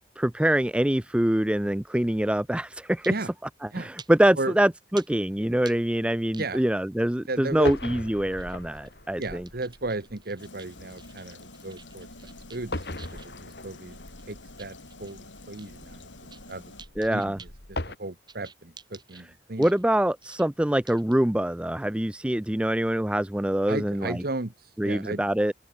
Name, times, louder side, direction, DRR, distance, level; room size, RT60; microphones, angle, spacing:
voice 1, 0.2-3.1 3.8-9.4 17.0-17.4 19.6-24.2 24.8-25.5, right 1 dB, 5° right, 0.4 m, -24 dB
sound 1, 3.0-3.2 4.0-4.1 5.0-5.1 5.6-5.8 6.3-6.7 7.4-7.8 8.3-8.9 9.2-13.4 13.9-15.1 15.6-15.7 16.0-16.5 16.8-17.6 18.3-19.2 19.6-19.8 20.2-20.4 20.9-21.1, right 6 dB, 25° right, 2.7 m, -49 dB
voice 2, 7.3-7.7 9.2-14.0 14.3-16.7 17.1-19.7 23.7-25.2, right 2 dB, 55° right, 1.4 m, -35 dB
sound 2, 7.5-18.0, left 2 dB, 60° left, 4.1 m, -40 dB
sound 3, 10.4-16.8, left 2 dB, 85° left, 7.0 m, -48 dB
open air
head